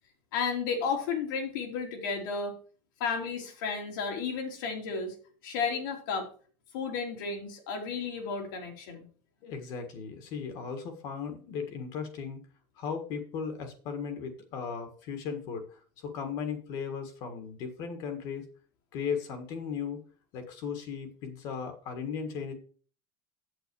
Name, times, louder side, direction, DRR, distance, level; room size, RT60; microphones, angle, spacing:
voice 1, 0.3-2.6 3.0-5.1 5.4-6.3 6.7-9.1, left 5 dB, 80° left, 2 dB, 3.0 m, -33 dB
voice 2, 9.4-12.4 12.8-15.6 16.0-18.4 18.9-20.0 20.3-22.5, left 6 dB, 40° left, 6 dB, 1.6 m, -36 dB
8.1 x 8.0 x 4.7 m, 0.41 s
cardioid pair, 180°, 11 cm